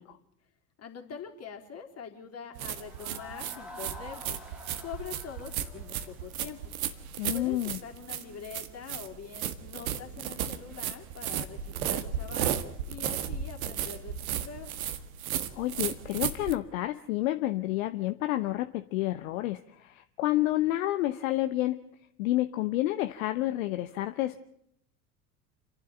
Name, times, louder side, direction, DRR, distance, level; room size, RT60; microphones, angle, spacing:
voice 1, 0.8-4.4 4.8-6.7 7.3-14.7, left 6 dB, 35° left, 3 dB, 3.8 m, -44 dB
sound 1, 2.6-16.6, right 9 dB, 65° right, 1.7 m, -34 dB
sound 2, 2.7-7.4, equal, ahead, 2.6 m, -48 dB
voice 2, 7.2-7.8 15.5-21.8 22.2-24.4, left 16 dB, 60° left, 9 dB, 1.1 m, -29 dB
29.0 x 11.5 x 9.0 m, 0.71 s
figure-of-eight pair, 70°, 45 cm